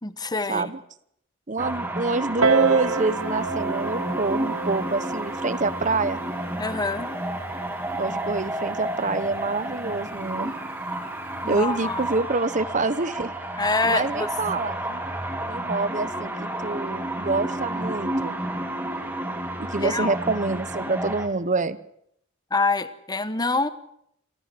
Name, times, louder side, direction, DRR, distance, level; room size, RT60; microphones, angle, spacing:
voice 1, 0.0-0.7 6.6-7.1 11.4-12.0 13.6-14.3 19.8-20.2 22.5-23.7, left 3 dB, 20° left, 13 dB, 1.1 m, -26 dB
voice 2, 1.5-6.2 8.0-10.5 11.5-13.3 13.8-15.0 15.5-18.3 19.6-21.8, right 3 dB, 35° right, 15 dB, 1.0 m, -26 dB
sound 1, 1.6-21.3, right 1 dB, 10° right, 2.3 m, -31 dB
Piano, 2.4-7.6 8.4-8.5, right 4 dB, 90° right, 2.1 m, -28 dB
28.0 x 14.0 x 7.7 m, 0.73 s
head